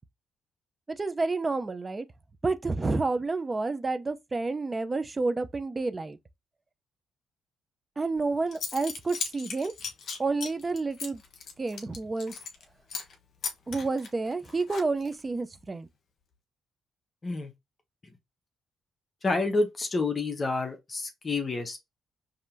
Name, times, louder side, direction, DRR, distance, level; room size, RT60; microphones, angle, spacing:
voice 1, 0.9-2.1 2.4-6.2 8.0-9.7 10.2-11.2 11.6-12.3 13.7-15.9, right 3 dB, 25° right, 0.6 m, -29 dB
Zipper (clothing) / Coin (dropping), 8.2-8.3 8.5-12.6 12.9-13.1 13.4-15.2, left 6 dB, 65° left, 1.1 m, -37 dB
voice 2, 19.2-21.8, left 3 dB, 35° left, 1.0 m, -29 dB
5.3 x 2.8 x 2.7 m
cardioid pair, 90°, 0 cm